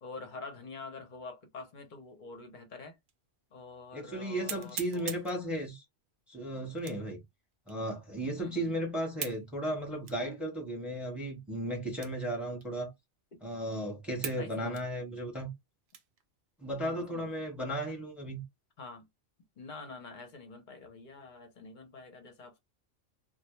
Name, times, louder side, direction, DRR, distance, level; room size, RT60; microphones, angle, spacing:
voice 1, 0.0-3.0 3.5-5.1 8.4-8.7 13.3-13.4 14.3-14.8 16.8-17.3 18.8-19.1 19.6-22.6, left 3 dB, 50° left, 0.7 m, -46 dB
sound 1, 3.1-3.2 3.7-3.8 4.5-5.4 6.8-7.2 7.7-7.8 9.2-9.5 10.0-10.2 10.9-11.0 11.9-12.3 12.6-12.7 13.4-13.5 14.2-14.5 14.7-16.2 16.7-16.9 17.4-17.8, right 8 dB, 65° right, 0.7 m, -42 dB
voice 2, 3.9-5.8 6.3-7.2 7.7-12.9 13.4-15.5 16.6-18.4, right 1 dB, ahead, 0.9 m, -35 dB
2.1 x 2.1 x 3.0 m
omnidirectional pair, 1.3 m